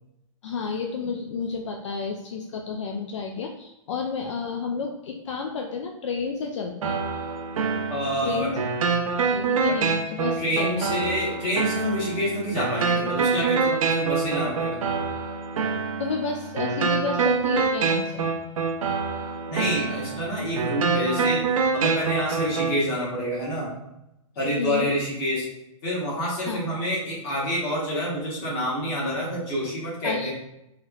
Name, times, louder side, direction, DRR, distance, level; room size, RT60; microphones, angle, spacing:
voice 1, 0.4-7.0 8.2-8.6 9.3-10.9 16.0-18.3 24.6-24.9 26.5-26.7 30.0-30.3, left 5 dB, 60° left, 2 dB, 0.4 m, -31 dB
sound 1, 6.8-22.8, right 5 dB, 80° right, 0.5 m, -26 dB
voice 2, 7.9-8.6 9.7-9.8 10.4-14.9 19.5-23.7 24.3-25.5 25.8-30.3, equal, 25° left, -6 dB, 1.1 m, -27 dB
3.2 x 2.9 x 2.3 m, 0.87 s
hypercardioid pair, 170°, 17 cm